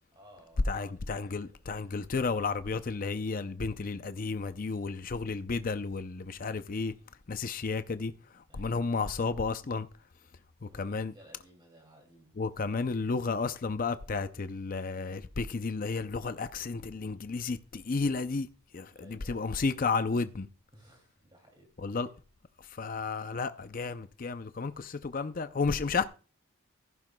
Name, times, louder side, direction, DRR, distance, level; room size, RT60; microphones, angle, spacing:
voice 1, 0.1-1.5 4.4-4.5 6.3-6.7 8.5-8.7 10.7-12.3 18.9-19.5 20.7-21.7, right 1 dB, 20° right, 2.6 m, -58 dB
voice 2, 0.7-6.9 7.3-9.9 10.6-11.1 12.4-18.5 18.7-20.5 21.8-22.1 22.6-26.0, left 4 dB, 40° left, 0.5 m, -32 dB
14.5 x 11.0 x 2.2 m
head